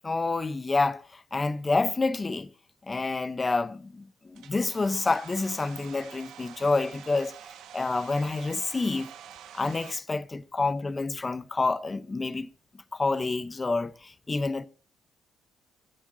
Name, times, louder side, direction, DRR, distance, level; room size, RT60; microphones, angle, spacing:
voice 1, 0.0-1.0 1.3-2.5 2.9-7.3 7.7-9.1 9.5-12.5 12.9-14.7, left 3 dB, 25° left, 0.8 m, -28 dB
Domestic sounds home sounds, 4.3-9.9, right 9 dB, 75° right, 1.5 m, -47 dB
14.5 x 9.9 x 2.7 m
supercardioid pair, 75°, 0 cm